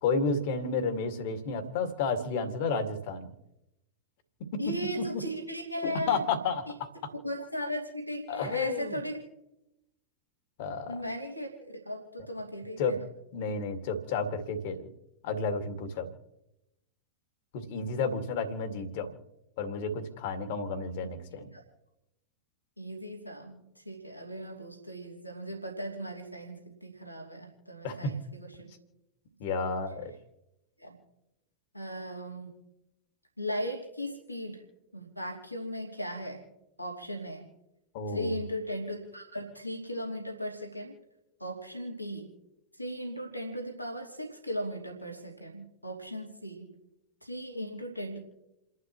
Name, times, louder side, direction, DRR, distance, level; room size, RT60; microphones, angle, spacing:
voice 1, 0.0-3.3 4.5-4.6 5.8-6.6 8.3-9.0 10.6-11.0 12.8-13.0 13.3-14.9 15.2-16.1 17.5-19.1 19.6-21.5 27.8-28.1 29.4-30.1 37.9-38.4, left 4 dB, 50° left, 8 dB, 2.1 m, -31 dB
voice 2, 4.6-6.3 7.2-9.2 10.9-13.1 21.0-21.2 21.5-21.6 22.8-28.7 29.5-29.6 30.8-31.0 31.7-32.5 33.4-34.6 34.9-36.4 36.8-37.5 38.1-41.0 41.4-42.3 42.8-46.7 47.2-48.2, equal, 90° left, 1 dB, 2.8 m, -37 dB
29.5 x 11.5 x 3.1 m, 0.91 s
figure-of-eight pair, 90°, 0 cm